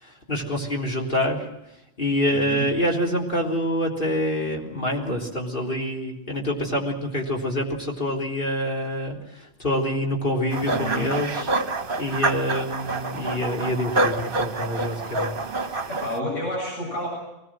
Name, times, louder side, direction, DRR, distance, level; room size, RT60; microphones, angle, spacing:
voice 1, 0.0-1.5 2.0-11.5 12.0-15.3, equal, 45° left, -1 dB, 3.9 m, -26 dB
voice 2, 2.3-2.6 10.7-11.1 15.9-17.1, equal, 85° left, -3 dB, 8.2 m, -30 dB
sound 1, 10.5-16.2, right 2 dB, 45° right, 1.4 m, -27 dB
24.0 x 20.0 x 7.7 m, 0.89 s
omnidirectional pair, 1.3 m